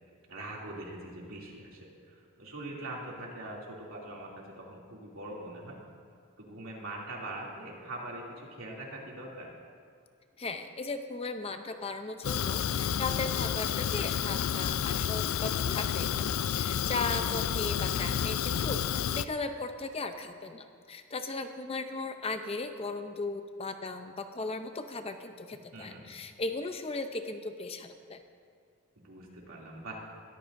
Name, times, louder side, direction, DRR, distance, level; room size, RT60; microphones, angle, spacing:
voice 1, 0.3-5.8 6.4-9.5 16.8-17.2 25.7-26.1 29.0-30.0, right 1 dB, 75° right, -3 dB, 2.8 m, -42 dB
voice 2, 10.4-28.2, left 3 dB, 25° left, 7 dB, 0.6 m, -37 dB
Fire, 12.2-19.2, left 9 dB, 75° left, 0.4 m, -30 dB
21.5 x 14.0 x 2.6 m, 2.2 s
head